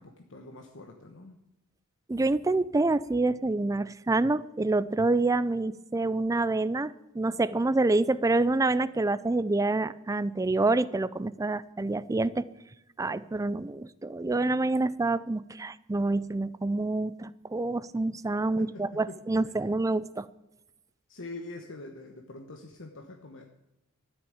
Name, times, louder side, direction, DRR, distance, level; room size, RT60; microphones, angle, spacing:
voice 1, 0.0-1.4 18.6-19.2 19.6-19.7 21.1-23.4, left 2 dB, 65° left, 3 dB, 1.2 m, -44 dB
voice 2, 2.1-12.4 13.0-20.3, right 2 dB, 15° right, 17 dB, 0.4 m, -27 dB
13.0 x 7.0 x 8.8 m, 0.92 s
head